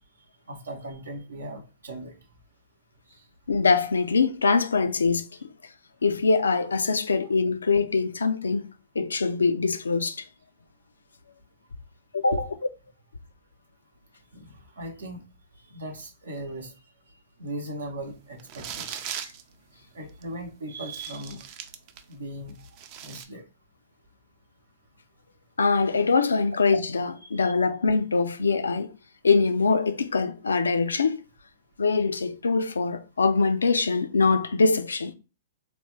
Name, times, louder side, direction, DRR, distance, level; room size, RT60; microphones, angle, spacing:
voice 1, 0.5-2.1 12.3-12.5 14.3-15.2 15.7-16.7 17.4-19.0 19.9-21.4 22.1-22.5 23.0-23.4 27.2-27.3, right 1 dB, 85° right, 0.8 m, -37 dB
voice 2, 3.5-5.5 6.0-10.3 12.1-12.4 25.6-28.9 29.2-31.2 31.8-35.1, left 4 dB, 90° left, 0.3 m, -23 dB
sound 1, 18.4-19.4 20.2-20.3 20.9-22.1 22.5-23.2, right 9 dB, 45° right, 0.4 m, -38 dB
3.4 x 2.2 x 3.1 m
hypercardioid pair, 115°, 0 cm